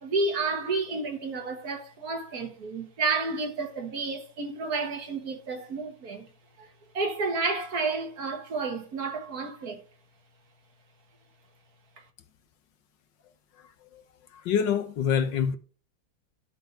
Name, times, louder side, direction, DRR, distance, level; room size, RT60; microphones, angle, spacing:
voice 1, 0.0-6.3 6.6-9.8 12.0-12.1, right 3 dB, 60° right, 1.8 m, -31 dB
voice 2, 13.6-14.0 14.3-15.6, left 7 dB, 85° left, 1.7 m, -27 dB
11.5 x 4.0 x 6.4 m
omnidirectional pair, 1.9 m